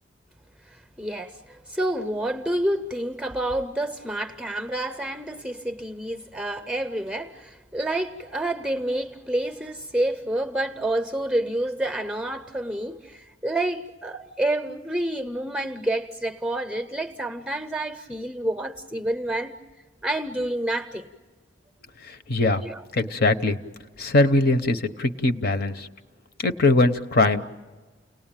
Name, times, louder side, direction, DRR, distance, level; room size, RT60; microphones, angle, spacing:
voice 1, 0.7-19.5 20.0-21.1 22.6-22.9, right 1 dB, 5° right, 0.7 m, -28 dB
voice 2, 22.3-22.6 22.9-23.6 24.0-25.9 26.4-27.6, left 2 dB, 50° left, 0.9 m, -21 dB
30.0 x 19.0 x 9.0 m
head